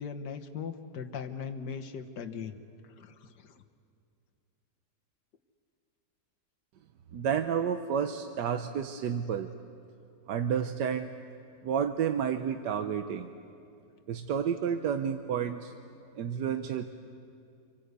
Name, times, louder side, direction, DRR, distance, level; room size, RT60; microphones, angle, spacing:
voice 1, 0.0-2.6 2.9-3.6, left 6 dB, 75° left, 6 dB, 1.8 m, -39 dB
voice 2, 7.1-9.5 10.3-11.1 11.6-13.3 14.1-15.7 16.2-16.9, right 8 dB, 75° right, 7 dB, 1.4 m, -30 dB
28.5 x 24.5 x 8.2 m, 2.5 s
omnidirectional pair, 1.8 m